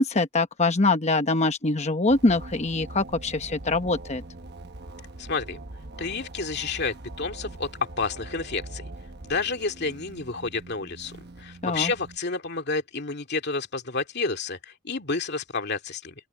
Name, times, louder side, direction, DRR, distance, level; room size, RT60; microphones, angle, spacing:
voice 1, 0.0-4.2 11.6-11.9, left 2 dB, 30° left, 1.0 m, -23 dB
sound 1, 2.1-12.2, right 2 dB, 50° right, 1.1 m, -42 dB
voice 2, 5.2-5.6 6.0-7.7 8.0-8.9 9.2-11.1 11.4-16.1, left 4 dB, 50° left, 2.5 m, -30 dB
open air
head